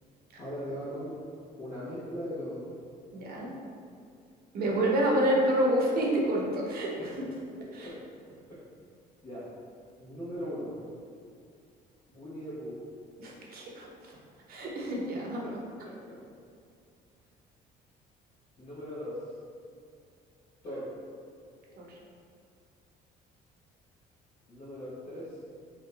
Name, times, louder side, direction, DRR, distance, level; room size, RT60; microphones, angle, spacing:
voice 1, 0.4-1.2 1.6-2.6 7.8-7.9 9.2-9.5 10.0-10.8 12.1-12.8 15.4-15.5 15.8-16.1 18.6-19.2 20.6-20.9 24.5-25.4, equal, 55° left, -12 dB, 1.1 m, -39 dB
voice 2, 3.1-3.5 4.5-6.9 7.8-7.9 13.2-14.1 14.5-15.4 21.8-21.9, right 1 dB, 60° right, -2 dB, 0.7 m, -28 dB
2.9 x 2.2 x 3.9 m, 2.4 s
cardioid pair, 110°, 17 cm